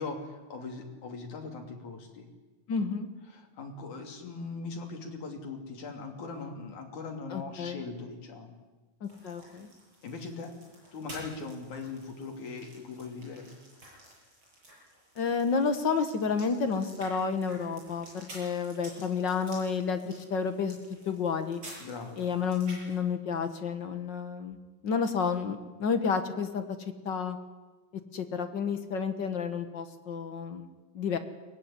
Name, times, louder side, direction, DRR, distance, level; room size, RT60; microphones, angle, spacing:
voice 1, 0.0-2.3 3.3-8.6 10.0-10.6 10.9-13.5 21.8-22.2, left 4 dB, 65° left, 3 dB, 4.3 m, -40 dB
voice 2, 2.7-3.1 7.3-7.8 9.0-9.7 15.2-21.6 22.2-24.6 24.8-26.6 27.0-27.4 28.1-30.7 30.9-31.2, left 5 dB, 50° left, 8 dB, 1.4 m, -30 dB
sound 1, 9.0-22.9, right 1 dB, 35° right, 8.9 m, -51 dB
23.0 x 19.0 x 10.0 m, 1.2 s
omnidirectional pair, 3.6 m